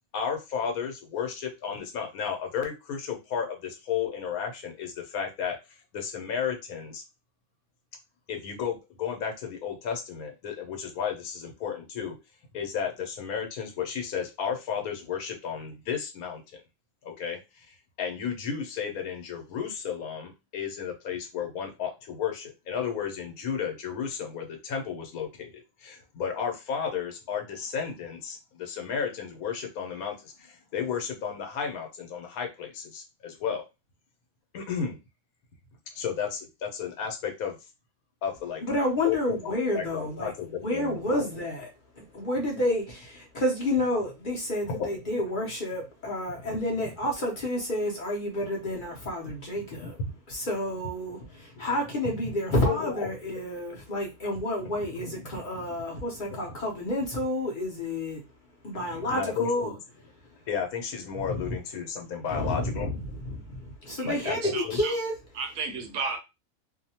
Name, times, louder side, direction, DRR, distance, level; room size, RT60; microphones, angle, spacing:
voice 1, 0.1-7.0 8.3-12.2 12.5-16.6 17.0-33.6 34.5-35.0 35.9-37.6 38.2-38.6 39.0-41.3 44.6-44.8 49.7-50.2 51.3-51.7 52.2-52.3 52.7-53.1 54.6-55.6 56.3-56.6 58.7-59.7 60.5-62.9 64.0-64.8, left 7 dB, 75° left, 3 dB, 1.1 m, -33 dB
voice 2, 38.6-41.7 42.0-50.0 50.3-58.2 58.6-59.7 61.2-61.4 62.3-63.0 63.2-65.2, left 1 dB, 45° left, -2 dB, 0.7 m, -30 dB
voice 3, 63.9-65.0 65.3-66.2, right 4 dB, 70° right, 6 dB, 0.9 m, -34 dB
2.7 x 2.1 x 2.8 m, 0.25 s
omnidirectional pair, 1.5 m